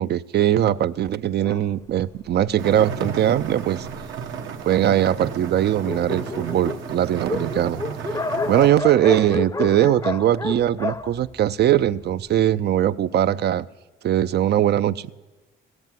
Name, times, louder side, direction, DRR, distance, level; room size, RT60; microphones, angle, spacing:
voice 1, 0.0-3.9 4.6-7.8 8.5-13.7 14.0-15.1, right 11 dB, 55° right, 15 dB, 0.4 m, -20 dB
Dog, 1.4-4.4 5.1-5.2 5.5-5.6 5.7-12.1, left 3 dB, 15° left, 0.6 m, -31 dB
sound 1, 2.6-8.7, right 7 dB, 80° right, 1.2 m, -33 dB
15.0 x 8.0 x 9.1 m, 1.2 s
cardioid pair, 90°, 20 cm